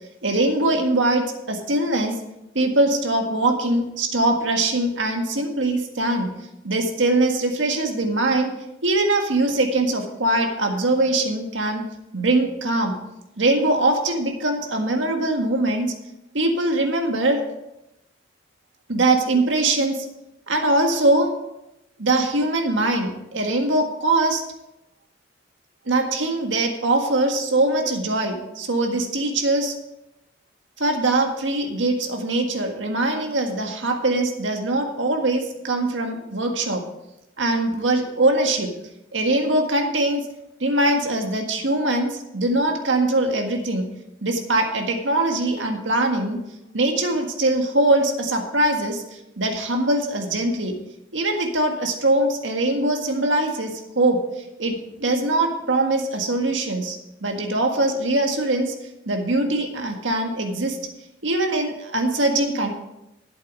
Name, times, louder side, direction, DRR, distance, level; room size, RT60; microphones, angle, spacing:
voice 1, 0.2-2.1 2.6-6.3 6.6-8.5 8.8-11.8 12.1-13.0 13.4-15.9 16.3-17.4 18.9-20.1 20.5-21.3 22.0-24.4 25.9-29.7 30.8-36.8 37.4-38.7 39.1-40.2 40.6-43.9 44.2-46.4 46.7-50.7 51.1-58.7 59.1-60.8 61.2-62.7, right 2 dB, 80° right, 3 dB, 1.7 m, -22 dB
11.5 x 8.3 x 4.9 m, 0.87 s
head